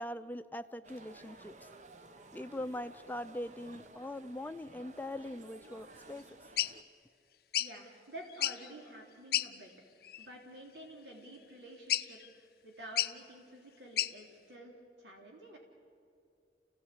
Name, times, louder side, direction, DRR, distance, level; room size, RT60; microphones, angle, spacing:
voice 1, 0.0-1.7 2.3-6.2, left 1 dB, 10° left, 9 dB, 0.6 m, -42 dB
sound 1, 0.8-6.8, right 2 dB, 45° right, 0.9 m, -55 dB
sound 2, 6.6-6.7 7.5-7.7 8.3-8.7 9.3-9.5 10.0-10.3 11.9-12.3 13.0-13.1 14.0-14.1, left 12 dB, 60° left, 0.6 m, -32 dB
voice 2, 7.6-9.7 10.2-15.6, right 1 dB, 80° right, 0 dB, 3.4 m, -50 dB
27.5 x 16.5 x 8.4 m, 2.5 s
head